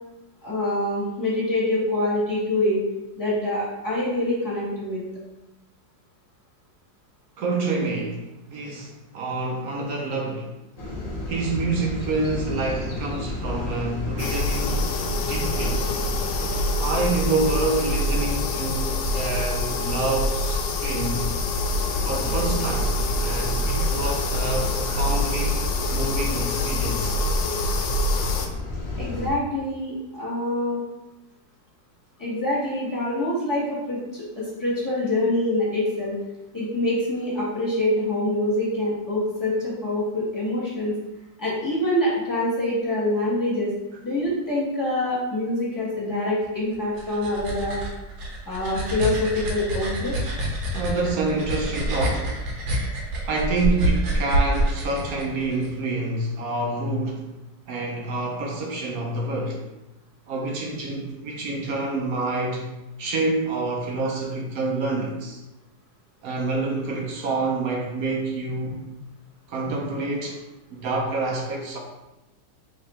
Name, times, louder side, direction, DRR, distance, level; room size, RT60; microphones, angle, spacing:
voice 1, 0.4-2.8 3.2-5.0 29.0-30.8 32.2-36.2 36.5-40.9 41.4-43.7 44.0-47.8 48.5-50.1, left 1 dB, 10° left, -7 dB, 1.4 m, -25 dB
voice 2, 7.4-10.5 11.3-14.8 15.3-16.0 16.8-21.2 22.0-22.9 23.2-25.6 25.9-27.2 50.7-52.4 53.2-57.3 57.7-59.6 60.3-62.6 63.0-65.4 66.2-68.8 69.5-70.4 70.7-71.8, right 3 dB, 70° right, 0 dB, 0.9 m, -27 dB
sound 1, 10.8-29.3, left 2 dB, 45° left, 0.5 m, -33 dB
sound 2, 14.2-28.5, left 2 dB, 80° left, 1.3 m, -26 dB
sound 3, 46.7-55.7, right 1 dB, 90° right, 1.6 m, -27 dB
3.6 x 3.2 x 4.2 m, 0.98 s
omnidirectional pair, 2.0 m